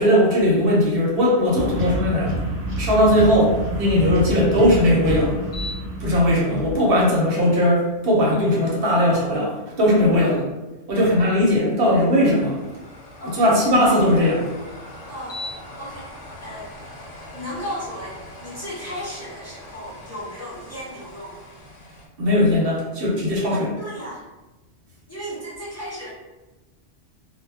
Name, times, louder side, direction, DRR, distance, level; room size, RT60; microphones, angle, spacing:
voice 1, 0.0-2.4 2.8-5.4 6.0-10.5 10.9-12.6 13.3-14.5 22.2-23.7, left 1 dB, 55° right, -4 dB, 0.9 m, -19 dB
sound 1, 1.6-6.9, equal, 90° right, 1.0 m, -28 dB
sound 2, 5.5-6.1 6.6-6.7 11.8-22.1, left 1 dB, 85° left, 0.9 m, -40 dB
voice 2, 13.2-13.6 15.1-15.4 15.8-16.1 16.4-16.7 17.3-21.4 23.5-24.2 25.1-26.1, equal, 15° left, -8 dB, 0.6 m, -35 dB
2.2 x 2.2 x 3.3 m, 1.1 s
omnidirectional pair, 1.2 m